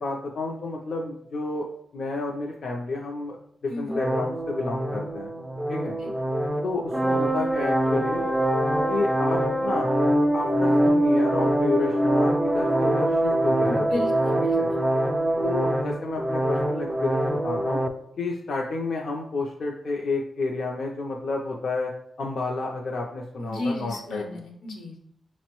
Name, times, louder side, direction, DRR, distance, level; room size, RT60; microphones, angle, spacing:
voice 1, 0.0-1.7 1.9-5.3 5.7-6.0 6.6-8.2 8.9-9.9 10.3-14.0 14.5-14.7 15.4-17.8 18.2-21.9 22.2-24.2, left 3 dB, 60° left, -1 dB, 0.4 m, -30 dB
voice 2, 3.7-4.0 6.0-6.1 13.6-14.8 23.4-25.0, left 2 dB, 85° left, 2 dB, 0.9 m, -33 dB
sound 1, 3.9-17.9, right 1 dB, 15° right, 0.3 m, -24 dB
6.0 x 2.0 x 2.9 m, 0.73 s
wide cardioid pair, 110°, 0 cm